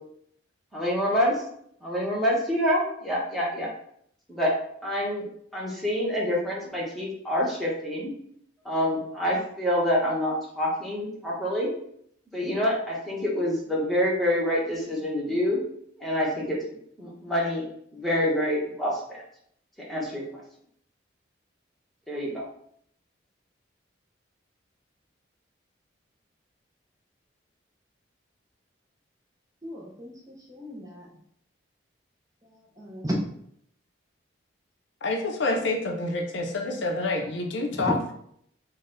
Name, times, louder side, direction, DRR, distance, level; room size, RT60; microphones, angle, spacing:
voice 1, 0.7-1.4 1.8-3.7 4.3-4.5 4.8-5.3 5.5-8.1 8.6-11.7 12.3-15.6 16.0-17.7 17.9-19.2 19.8-20.2 22.1-22.5, equal, ahead, -5 dB, 0.9 m, -27 dB
voice 2, 29.6-31.1 32.5-33.3 37.7-37.9, equal, 20° right, -2 dB, 0.5 m, -34 dB
voice 3, 35.0-38.1, left 2 dB, 75° left, 3 dB, 0.6 m, -28 dB
3.9 x 2.2 x 3.8 m, 0.68 s
head